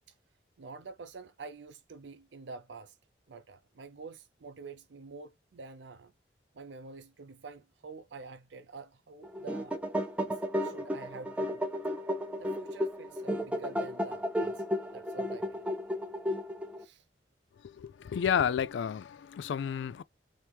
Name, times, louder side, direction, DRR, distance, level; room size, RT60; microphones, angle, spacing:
voice 1, 0.6-3.0 3.3-6.1 6.5-9.8 10.2-11.6 12.4-14.6 14.9-15.6 16.8-17.0, right 4 dB, 80° right, 0.6 m, -47 dB
sound 1, 9.2-16.8, equal, 5° right, 0.5 m, -33 dB
voice 2, 17.6-20.0, left 8 dB, 85° left, 0.3 m, -31 dB
4.3 x 2.9 x 3.4 m
head